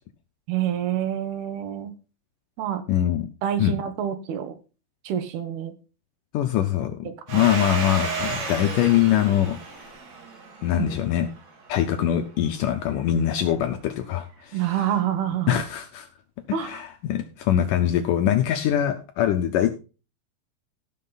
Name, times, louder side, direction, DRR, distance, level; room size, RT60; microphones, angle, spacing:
voice 1, 0.5-1.9 2.6-2.8 3.4-4.5 5.0-5.7 7.3-7.5 10.7-10.9 14.5-15.6 16.5-16.8, right 10 dB, 80° right, 10 dB, 3.2 m, -27 dB
voice 2, 2.9-3.3 3.6-3.8 6.3-7.0 7.3-9.6 10.6-11.3 11.7-14.6 15.5-16.1 16.5-19.7, left 11 dB, 75° left, 8 dB, 2.0 m, -23 dB
Domestic sounds home sounds, 7.3-11.7, right 4 dB, 50° right, 3.1 m, -33 dB
16.5 x 6.5 x 4.0 m, 0.33 s
omnidirectional pair, 4.5 m